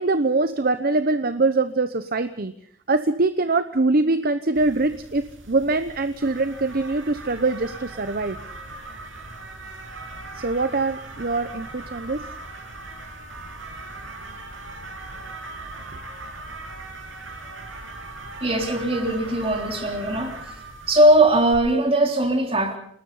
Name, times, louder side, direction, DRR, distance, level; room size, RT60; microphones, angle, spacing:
voice 1, 0.0-2.5 2.9-8.4 10.3-12.2, right 3 dB, 50° right, 11 dB, 0.9 m, -23 dB
sound 1, 4.5-21.5, right 2 dB, 75° right, 7.4 m, -39 dB
voice 2, 18.4-20.4 20.9-22.8, right 1 dB, 30° right, 4 dB, 3.7 m, -19 dB
28.0 x 19.5 x 5.6 m, 0.62 s
head